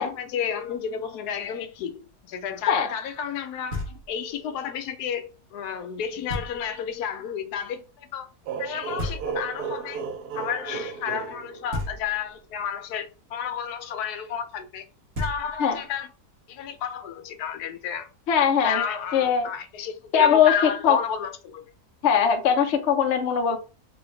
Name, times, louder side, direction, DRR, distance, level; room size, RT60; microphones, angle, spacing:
voice 1, 0.0-8.3 8.6-10.0 10.3-14.8 15.2-16.1 16.5-18.1 18.4-21.6, left 7 dB, 85° left, 1.2 m, -31 dB
Knock, 3.7-4.4 6.3-6.9 9.0-9.8 11.7-12.5 14.8-14.9 15.1-15.9, left 1 dB, 65° right, 1.6 m, -34 dB
sound 1, 8.5-12.2, right 6 dB, 80° right, 1.2 m, -34 dB
voice 2, 18.3-18.8 19.1-19.5 20.1-20.5 20.8-21.0 22.0-23.6, left 8 dB, 55° left, 0.8 m, -20 dB
3.5 x 3.1 x 3.1 m
omnidirectional pair, 1.6 m